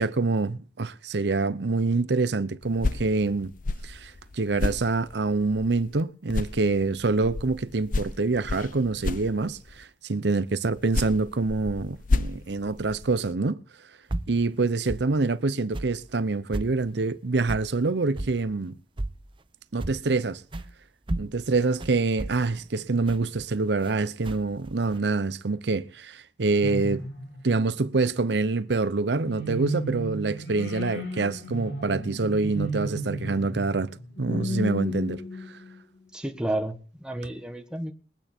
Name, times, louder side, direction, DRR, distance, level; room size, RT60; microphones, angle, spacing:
voice 1, 0.0-3.5 3.8-13.6 14.3-18.8 19.7-20.4 21.2-27.1 27.4-33.9 34.2-35.2, right 3 dB, 75° right, 0.7 m, -26 dB
sound 1, 2.6-6.0 6.3-9.8 10.7-13.3, left 3 dB, 50° left, 0.8 m, -32 dB
sound 2, 14.1-14.4 14.9-15.1 15.7-16.0 16.5-16.8 17.5-17.7 18.2-18.4 19.0-19.3 19.8-20.1 20.5-20.7 21.1-23.9 24.2-25.0, right 1 dB, 30° right, 0.7 m, -33 dB
sound 3, 26.6-27.7 29.3-35.8, right 1 dB, 90° left, 4.0 m, -33 dB
voice 2, 36.1-37.9, right 1 dB, 5° right, 1.4 m, -31 dB
22.0 x 8.9 x 4.4 m
head